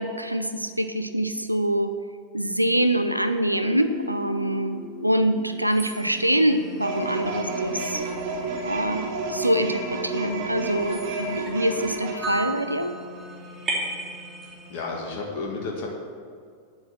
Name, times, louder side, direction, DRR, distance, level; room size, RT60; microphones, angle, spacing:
voice 1, 0.0-1.9 2.3-8.0 8.6-13.0, right 1 dB, 90° right, 9 dB, 0.6 m, -25 dB
Guitar, 3.6-7.3, left 2 dB, 15° left, 1.8 m, -40 dB
sound 1, 5.7-14.8, right 1 dB, 20° right, 2.6 m, -37 dB
sound 2, 6.8-12.1, right 3 dB, 50° right, 1.7 m, -30 dB
voice 2, 14.4-15.9, left 3 dB, 45° left, -1 dB, 1.7 m, -32 dB
9.7 x 7.8 x 5.8 m, 2.2 s
figure-of-eight pair, 90°, 0 cm